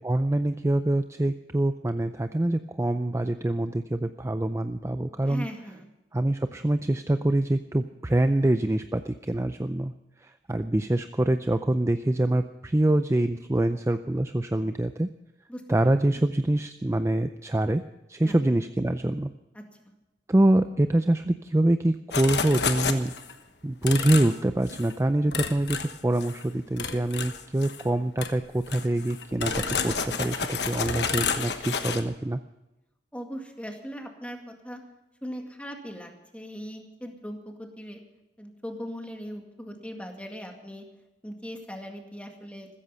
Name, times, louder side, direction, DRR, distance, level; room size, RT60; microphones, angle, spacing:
voice 1, 0.0-5.5 6.1-9.9 10.2-15.1 15.7-17.8 18.1-19.3 20.3-23.1 23.6-32.4, right 1 dB, 15° right, 9 dB, 0.4 m, -25 dB
voice 2, 5.3-5.9 15.5-15.9 16.2-16.3 18.2-18.5 19.5-19.9 33.1-34.8 35.2-38.0 38.4-40.8 41.2-42.7, equal, 5° left, 3 dB, 2.0 m, -39 dB
sound 1, 22.1-23.3 23.8-24.4 24.7-24.9 25.3-26.4 26.8-27.9 28.2-28.3 28.7-32.0, left 5 dB, 65° left, 1.2 m, -30 dB
15.5 x 14.0 x 5.6 m, 0.98 s
head